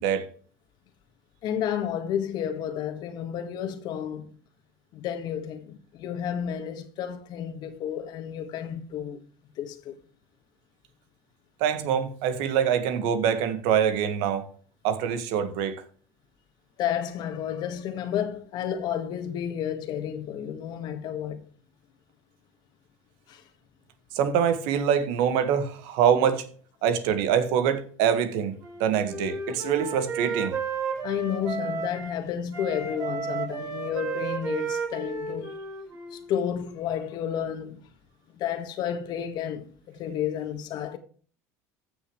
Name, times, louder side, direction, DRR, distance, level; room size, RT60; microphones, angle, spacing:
voice 1, 1.4-4.3 4.9-9.2 9.6-9.9 16.8-21.4 23.3-23.4 31.0-35.6 36.1-37.8 38.3-41.0, left 9 dB, 60° left, 1.7 m, -31 dB
voice 2, 11.6-14.4 14.8-15.8 24.1-26.5 26.8-30.6, right 8 dB, 70° right, 1.6 m, -24 dB
Wind instrument woodwind instrument, 28.6-32.2 32.5-36.3, right 5 dB, 45° right, 5.3 m, -33 dB
14.5 x 6.7 x 3.2 m
supercardioid pair, 95°, 8 cm